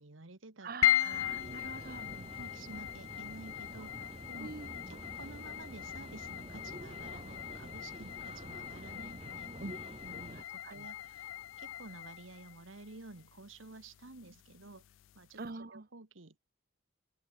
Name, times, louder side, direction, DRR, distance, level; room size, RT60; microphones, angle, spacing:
voice 1, 0.0-0.7 1.0-1.2 2.0-4.5 4.9-9.5 10.0-11.3 11.6-14.8 15.2-15.4 15.7-16.4, right 2 dB, 80° right, 1.6 m, -51 dB
voice 2, 0.6-2.1 4.4-4.7 9.6-9.7 10.3-10.9 15.4-15.9, right 3 dB, 45° right, 1.0 m, -44 dB
sound 1, 0.8-15.3, left 13 dB, 75° left, 0.3 m, -38 dB
sound 2, 1.1-10.4, right 1 dB, 30° right, 2.3 m, -48 dB
open air
head